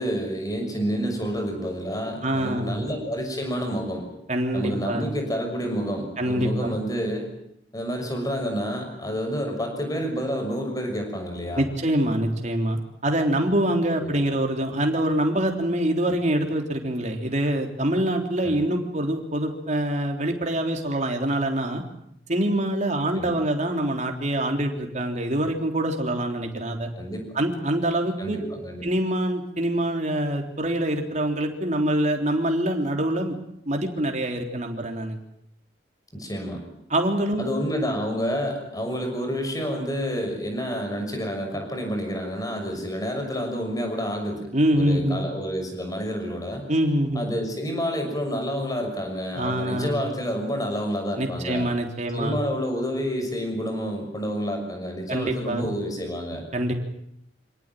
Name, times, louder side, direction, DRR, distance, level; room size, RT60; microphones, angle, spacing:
voice 1, 0.0-4.1 4.5-7.3 7.7-11.7 14.0-14.2 18.4-18.7 23.2-23.3 27.0-27.3 28.2-28.8 36.1-36.6 37.4-44.4 44.7-46.7 47.1-51.7 52.1-56.4, equal, 20° left, 4 dB, 6.3 m, -29 dB
voice 2, 2.2-2.8 4.3-5.1 6.2-6.8 11.5-21.8 22.3-26.9 27.4-28.5 28.8-33.3 33.7-35.2 36.9-37.5 44.5-45.2 46.7-47.3 49.3-50.0 51.2-52.4 55.1-55.7 56.5-56.7, right 1 dB, 40° right, 3 dB, 3.5 m, -25 dB
27.0 x 18.0 x 9.1 m, 0.77 s
head